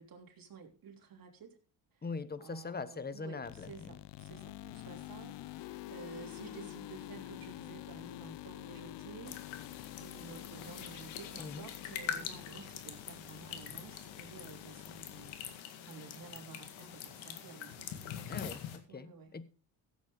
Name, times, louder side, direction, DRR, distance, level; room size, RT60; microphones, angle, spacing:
voice 1, 0.0-1.6 2.4-9.4 10.0-15.4 15.8-18.4 18.9-19.3, right 5 dB, 50° right, 3.4 m, -52 dB
voice 2, 2.0-4.0 11.4-11.7 18.3-19.4, left 4 dB, 20° left, 1.1 m, -42 dB
sound 1, 3.4-15.6, left 15 dB, 70° left, 0.7 m, -48 dB
sound 2, 9.3-18.8, left 9 dB, 85° left, 2.1 m, -44 dB
15.5 x 8.3 x 4.0 m
cardioid pair, 95°, 45 cm